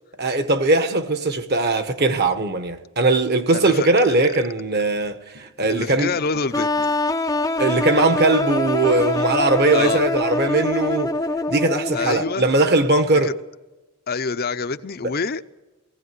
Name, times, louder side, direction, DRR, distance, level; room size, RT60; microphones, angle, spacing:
voice 1, 0.2-6.1 7.6-11.1 11.5-13.3 15.0-15.1, right 2 dB, 45° right, 1.4 m, -20 dB
voice 2, 3.5-4.4 5.7-6.7 9.7-10.0 11.9-12.5 13.2-13.3 14.1-15.4, left 4 dB, 45° left, 0.6 m, -27 dB
sound 1, 3.7-4.2 5.0-5.1 5.3-7.1 7.6-7.7 7.9-8.0 8.3-8.5, equal, 70° right, 6.7 m, -44 dB
sound 2, 6.5-12.3, left 2 dB, 15° left, 0.7 m, -24 dB
18.0 x 17.5 x 9.5 m
head